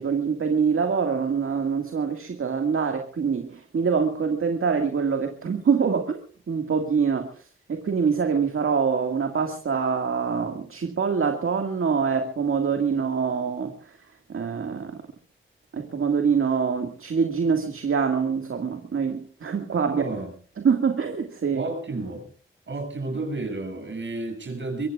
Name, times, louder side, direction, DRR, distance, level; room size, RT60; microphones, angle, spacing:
voice 1, 0.0-6.2 6.5-7.3 7.7-13.7 14.3-15.0 15.7-20.0 20.6-21.6, right 6 dB, 80° right, 5 dB, 2.0 m, -25 dB
voice 2, 19.9-20.3 21.5-22.3 22.7-24.9, right 2 dB, 60° right, 4 dB, 7.5 m, -31 dB
24.0 x 23.5 x 2.5 m, 0.42 s
wide cardioid pair, 120°, 21 cm